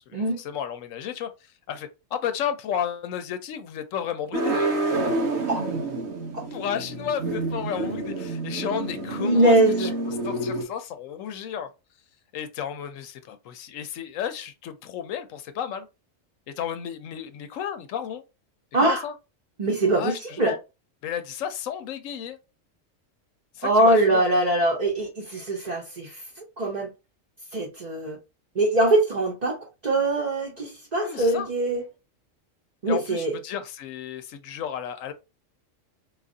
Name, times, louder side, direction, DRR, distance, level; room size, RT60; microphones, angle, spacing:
voice 1, 0.1-1.3 1.7-4.7 6.5-9.9 10.2-11.7 12.3-15.9 16.5-18.2 18.8-19.1 20.0-20.6 21.0-22.4 23.5-24.2 31.0-31.5 32.9-35.1, left 9 dB, 85° left, 1.0 m, -32 dB
sound 1, 4.3-10.6, right 2 dB, 85° right, 1.4 m, -28 dB
voice 2, 9.2-9.9 18.7-19.0 19.6-20.5 23.6-26.2 26.6-26.9 27.5-28.2 28.5-31.8 32.8-33.3, right 1 dB, 35° right, 0.9 m, -22 dB
4.5 x 2.4 x 2.6 m
omnidirectional pair, 1.3 m